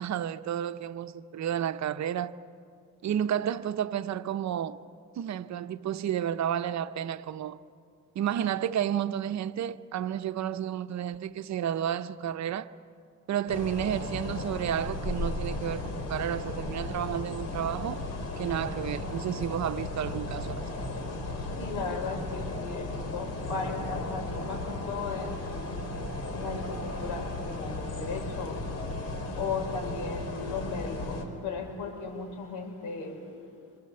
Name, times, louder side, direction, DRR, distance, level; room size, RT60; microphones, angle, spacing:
voice 1, 0.0-2.3 3.0-4.8 5.2-7.6 8.1-12.7 13.3-18.1 18.4-20.7, right 10 dB, 65° right, 0.9 m, -31 dB
sound 1, 13.5-31.2, left 2 dB, 55° left, 4.2 m, -35 dB
voice 2, 21.6-25.9 26.3-28.7 29.3-33.3, left 4 dB, 85° left, 5.7 m, -36 dB
27.5 x 26.0 x 7.9 m
cardioid pair, 90°, 30 cm